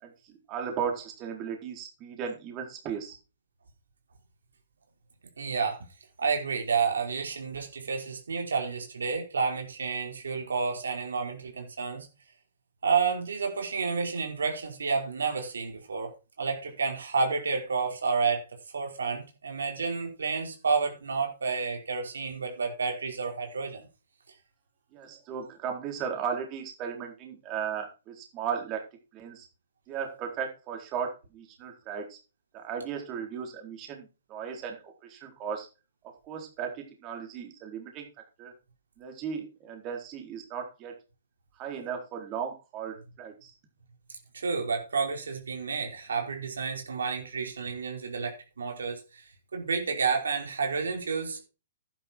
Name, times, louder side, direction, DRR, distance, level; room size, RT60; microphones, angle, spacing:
voice 1, 0.0-3.2 24.9-28.8 29.1-29.5 29.9-32.2 32.5-35.7 36.2-38.1 38.4-38.5 39.0-40.9 41.6-43.5, right 7 dB, 30° right, 3 dB, 4.1 m, -36 dB
voice 2, 5.4-5.8 6.2-12.1 12.8-16.1 16.4-18.4 18.7-23.9 44.3-51.4, right 5 dB, 90° right, 2 dB, 5.0 m, -30 dB
12.0 x 10.0 x 4.6 m, 0.31 s
hypercardioid pair, 140°, 0 cm